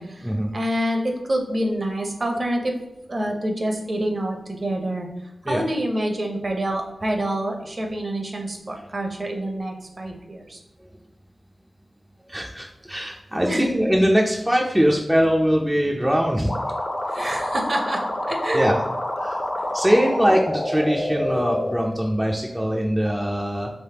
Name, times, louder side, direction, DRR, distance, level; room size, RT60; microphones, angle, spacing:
voice 1, 0.0-2.8 3.1-5.1 5.4-10.6 13.5-13.7 17.1-18.7, right 1 dB, 45° right, 2 dB, 0.7 m, -27 dB
voice 2, 12.3-16.5 18.5-18.8 19.2-19.4 19.7-23.7, equal, 5° right, -1 dB, 0.4 m, -22 dB
sound 1, 16.5-21.7, left 1 dB, 40° left, 0.6 m, -27 dB
3.4 x 3.1 x 2.8 m, 0.90 s
wide cardioid pair, 60°, 0 cm